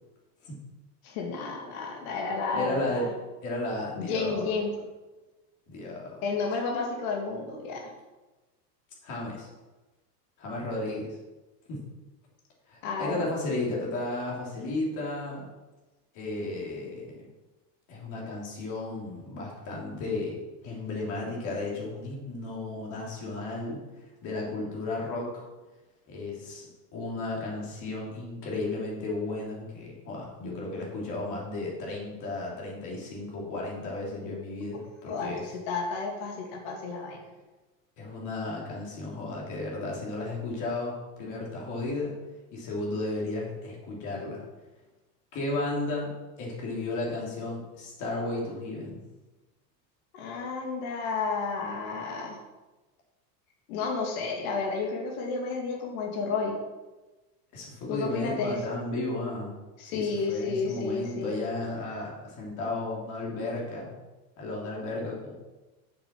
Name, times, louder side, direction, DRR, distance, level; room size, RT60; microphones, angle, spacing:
voice 1, 1.0-3.1 4.0-4.7 6.2-7.8 12.8-13.2 35.1-37.2 50.1-52.4 53.7-56.6 57.9-58.6 59.8-61.4, left 4 dB, 60° left, 0 dB, 2.3 m, -31 dB
voice 2, 2.5-3.1 3.4-4.6 5.7-6.2 9.0-9.5 10.4-11.2 11.7-11.9 12.7-15.4 16.1-17.2 17.9-20.4 20.6-23.8 24.2-25.4 26.1-35.5 38.0-42.2 42.5-44.4 45.3-49.0 57.5-59.6 59.8-63.9 64.4-65.3, left 2 dB, 35° left, -3 dB, 3.3 m, -34 dB
7.3 x 7.0 x 6.0 m, 1.1 s
supercardioid pair, 155°, 49 cm